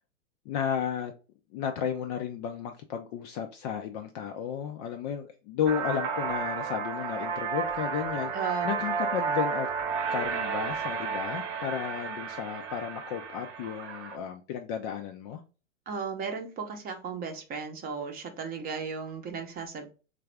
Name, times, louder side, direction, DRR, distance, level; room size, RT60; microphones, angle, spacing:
voice 1, 0.5-1.1 1.5-8.3 8.6-9.7 10.1-15.4, left 8 dB, 35° left, 0.4 m, -33 dB
sound 1, 5.7-14.2, right 6 dB, 70° right, 0.8 m, -32 dB
voice 2, 8.3-8.7 15.9-19.9, right 5 dB, 25° right, 0.7 m, -35 dB
4.0 x 2.4 x 3.3 m
hypercardioid pair, 125°, 38 cm